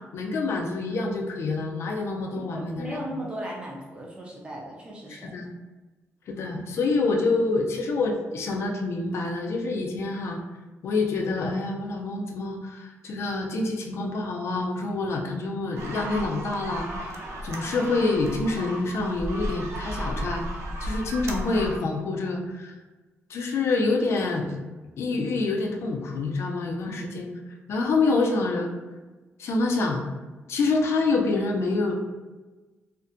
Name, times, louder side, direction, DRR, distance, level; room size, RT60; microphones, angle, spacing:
voice 1, 0.1-3.0 5.1-5.5 6.3-10.4 10.8-20.4 20.8-22.7 23.3-24.5 25.0-27.3 27.7-28.7 29.4-30.0 30.5-31.9, left 3 dB, 65° left, 1 dB, 0.4 m, -27 dB
voice 2, 2.3-5.3 26.9-27.0, right 1 dB, 20° right, -3 dB, 0.5 m, -37 dB
sound 1, 15.7-21.8, right 1 dB, 85° right, 0.3 m, -34 dB
2.5 x 2.1 x 2.5 m, 1.2 s
cardioid pair, 135°, 5 cm